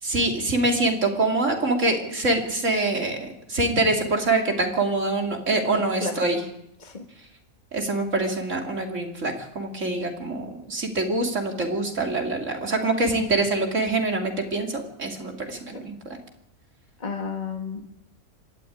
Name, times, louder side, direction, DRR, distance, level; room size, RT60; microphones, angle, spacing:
voice 1, 0.0-6.4 7.7-16.2, right 2 dB, 60° right, 3 dB, 3.4 m, -25 dB
voice 2, 5.7-6.1 6.8-7.0 17.0-17.8, left 4 dB, 30° left, 3 dB, 1.9 m, -32 dB
25.5 x 12.5 x 9.6 m, 0.81 s
omnidirectional pair, 1.5 m